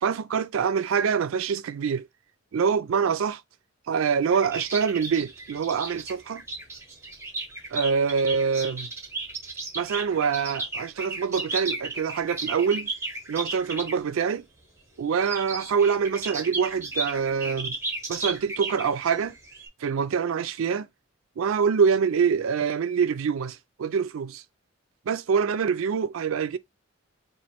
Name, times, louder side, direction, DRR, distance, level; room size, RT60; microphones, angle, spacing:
voice 1, 0.0-2.1 2.5-3.4 3.9-6.4 7.7-8.9 9.8-12.9 13.3-14.4 15.0-17.8 18.1-19.3 19.8-20.9 21.4-24.4 25.1-26.6, right 6 dB, 75° right, 0.4 m, -25 dB
sound 1, 4.3-14.0 15.1-19.7, right 2 dB, 10° right, 0.7 m, -34 dB
3.1 x 2.4 x 4.3 m
head